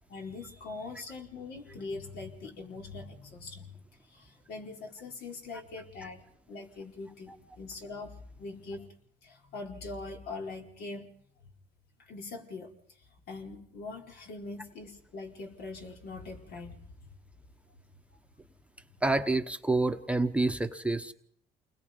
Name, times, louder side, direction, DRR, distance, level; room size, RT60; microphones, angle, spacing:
voice 1, 0.1-8.9 9.2-11.1 12.0-16.9 18.9-19.0, left 3 dB, 70° left, 1 dB, 4.6 m, -42 dB
voice 2, 19.0-21.1, right 2 dB, 5° right, 6 dB, 1.1 m, -28 dB
29.0 x 21.0 x 5.3 m, 0.65 s
cardioid pair, 110°, 17 cm